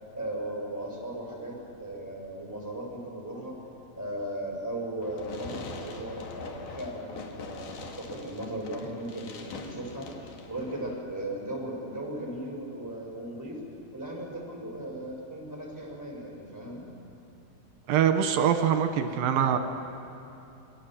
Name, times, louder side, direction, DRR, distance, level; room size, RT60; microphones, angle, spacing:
voice 1, 0.1-3.6 3.9-13.6 13.9-16.8, right 1 dB, 5° right, -2 dB, 5.3 m, -37 dB
Fireworks, 5.0-11.0, left 4 dB, 60° left, 3.1 m, -43 dB
voice 2, 17.9-19.6, right 8 dB, 75° right, 7 dB, 2.8 m, -24 dB
27.0 x 22.0 x 7.5 m, 2.9 s
omnidirectional pair, 4.4 m